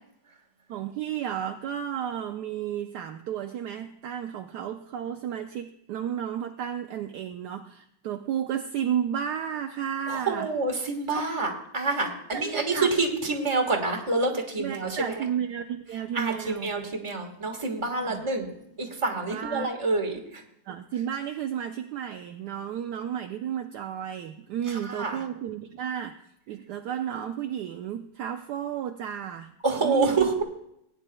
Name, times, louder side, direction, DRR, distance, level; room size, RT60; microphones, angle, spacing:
voice 1, 0.7-10.5 11.2-11.3 12.3-12.9 14.6-16.7 18.0-18.3 19.3-19.7 20.7-26.2 26.5-29.5 29.8-30.3, right 9 dB, 75° right, 6 dB, 0.9 m, -32 dB
voice 2, 10.1-15.2 16.1-20.4 24.7-25.2 29.6-30.4, right 3 dB, 15° right, 1 dB, 1.3 m, -27 dB
19.0 x 9.7 x 2.3 m, 0.78 s
omnidirectional pair, 2.3 m